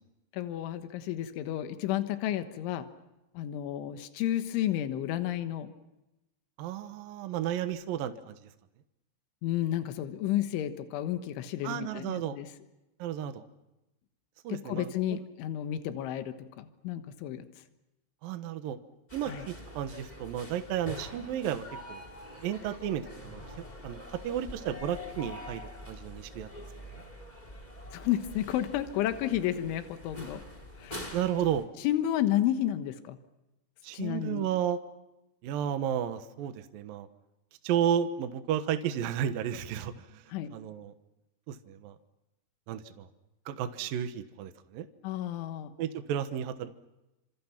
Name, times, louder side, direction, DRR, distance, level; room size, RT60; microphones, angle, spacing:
voice 1, 0.3-2.9 3.4-5.7 9.4-12.5 14.5-17.5 19.3-19.5 27.9-30.4 30.8-31.0 31.8-33.2 33.9-34.5 40.3-40.5 45.0-45.7, left 12 dB, 85° left, 9 dB, 3.7 m, -31 dB
voice 2, 6.6-8.3 11.6-12.4 13.0-13.4 14.4-15.2 18.2-18.8 19.1-22.0 22.4-26.5 31.1-31.6 33.8-34.8 35.4-37.1 37.6-40.2 40.5-40.9 41.5-42.0 42.7-43.1 43.5-44.9 45.8-46.8, right 9 dB, 65° right, 9 dB, 2.4 m, -33 dB
sound 1, 19.1-31.6, left 1 dB, 10° left, 2.6 m, -45 dB
29.5 x 27.0 x 5.9 m, 0.95 s
omnidirectional pair, 5.4 m